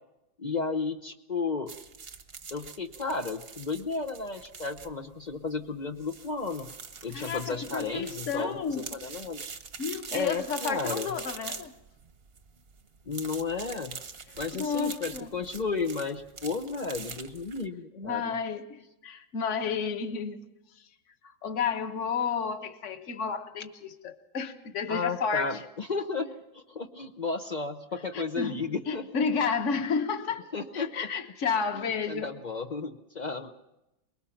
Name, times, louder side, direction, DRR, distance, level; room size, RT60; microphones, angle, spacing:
voice 1, 0.4-1.7 2.5-6.7 7.0-9.4 10.1-11.1 13.1-14.0 14.4-18.3 24.9-29.0 30.5-30.9 31.8-33.5, left 4 dB, 85° left, 0.4 m, -33 dB
sound 1, 1.7-17.7, right 5 dB, 40° right, 0.9 m, -44 dB
voice 2, 7.1-8.8 9.8-11.7 14.5-15.3 17.9-20.4 20.7-20.9 21.2-25.6 28.1-30.4 30.7-32.4, left 6 dB, 40° left, 1.4 m, -31 dB
23.5 x 21.5 x 5.8 m
omnidirectional pair, 2.1 m